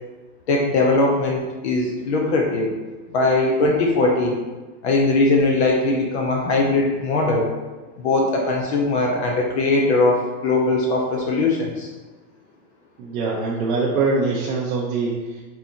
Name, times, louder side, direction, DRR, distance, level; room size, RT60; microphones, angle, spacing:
voice 1, 0.5-2.7 3.1-4.4 4.8-7.5 8.0-11.9, left 2 dB, 45° left, 0 dB, 0.5 m, -20 dB
voice 2, 13.0-15.4, right 3 dB, 55° right, -4 dB, 0.7 m, -23 dB
4.1 x 2.9 x 3.7 m, 1.3 s
supercardioid pair, 165°, 50 cm